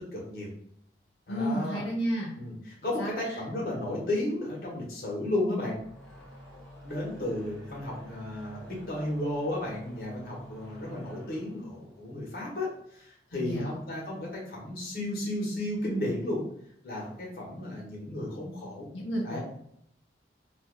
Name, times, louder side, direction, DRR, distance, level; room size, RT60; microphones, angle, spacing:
voice 1, 0.1-0.5 1.3-1.8 2.4-5.8 6.8-16.4 16.8-18.9 19.2-19.4, left 1 dB, 55° left, -4 dB, 1.1 m, -33 dB
voice 2, 1.3-2.6 3.0-3.1 13.3-13.8 18.9-19.4, equal, 90° left, -2 dB, 0.6 m, -32 dB
sound 1, 5.5-12.9, equal, ahead, 0.8 m, -49 dB
2.6 x 2.4 x 3.7 m, 0.70 s
head